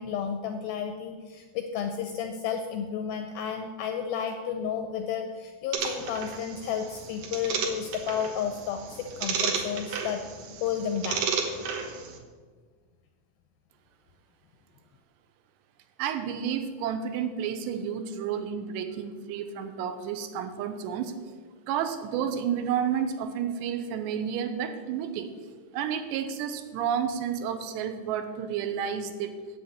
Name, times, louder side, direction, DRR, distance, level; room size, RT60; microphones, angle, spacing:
voice 1, 0.0-10.2 10.6-11.2, left 7 dB, 85° left, 5 dB, 2.1 m, -32 dB
sound 1, 5.7-12.2, right 5 dB, 70° right, 2.1 m, -33 dB
voice 2, 16.0-21.4 21.7-25.3 25.7-29.4, right 8 dB, 90° right, 8 dB, 3.0 m, -31 dB
8.0 x 7.9 x 8.5 m, 1.5 s
omnidirectional pair, 5.0 m